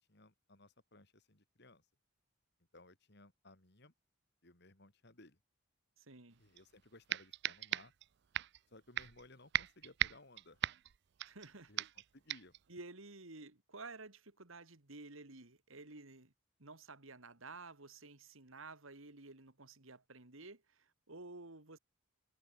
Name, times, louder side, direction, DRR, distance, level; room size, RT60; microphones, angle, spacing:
voice 1, 0.1-1.8 2.7-3.9 4.4-5.4 6.4-7.9 8.7-10.7 11.7-12.5, left 2 dB, 50° left, 3.5 m, -61 dB
voice 2, 6.0-6.4 11.2-11.9 12.7-16.3 16.6-21.8, right 3 dB, 75° right, 2.5 m, -53 dB
sound 1, 6.6-6.7 7.1-8.1 8.3-8.6 9.0-9.3 9.5-11.5 11.8-12.0 12.3-12.6, right 12 dB, 55° right, 0.4 m, -38 dB
head